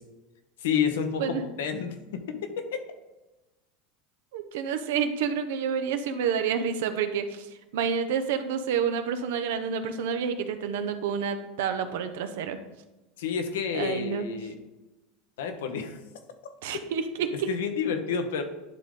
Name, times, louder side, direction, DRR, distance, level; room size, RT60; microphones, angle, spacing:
voice 1, 0.6-2.2 2.6-2.8 13.2-14.5 15.4-16.0 17.5-18.4, left 6 dB, 80° left, 6 dB, 0.9 m, -29 dB
voice 2, 4.3-7.5 7.7-12.6 13.7-14.3 16.6-17.5, right 7 dB, 75° right, 9 dB, 0.7 m, -29 dB
10.5 x 3.7 x 3.7 m, 1.1 s
hypercardioid pair, 95°, 0 cm